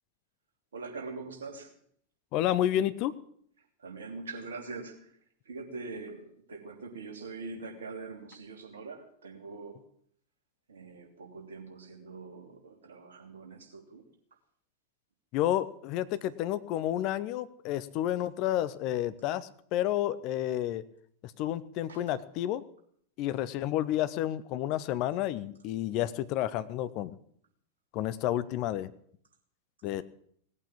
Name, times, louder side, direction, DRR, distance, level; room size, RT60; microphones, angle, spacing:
voice 1, 0.7-1.7 3.8-5.1 5.4-9.8 10.7-14.0 21.9-22.0, right 3 dB, 65° right, 2 dB, 3.1 m, -43 dB
voice 2, 2.3-3.1 15.3-20.8 21.2-22.6 23.2-27.1 27.9-28.9 29.8-30.0, left 12 dB, 40° left, 16 dB, 0.8 m, -30 dB
18.0 x 8.8 x 8.4 m, 0.64 s
figure-of-eight pair, 90°, 0 cm